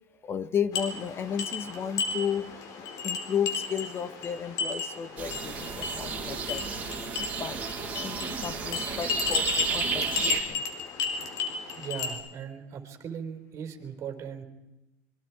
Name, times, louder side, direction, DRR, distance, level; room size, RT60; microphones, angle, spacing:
voice 1, 0.2-6.6 7.2-7.6 8.0-10.6, left 8 dB, 30° left, 14 dB, 1.2 m, -33 dB
sound 1, 0.7-12.1, left 5 dB, 50° left, 4.2 m, -34 dB
sound 2, 5.2-10.4, right 5 dB, 20° right, 5.0 m, -33 dB
voice 2, 11.7-14.4, right 7 dB, 35° right, 5 dB, 4.6 m, -38 dB
26.0 x 24.0 x 4.9 m, 0.93 s
supercardioid pair, 130°, 8 cm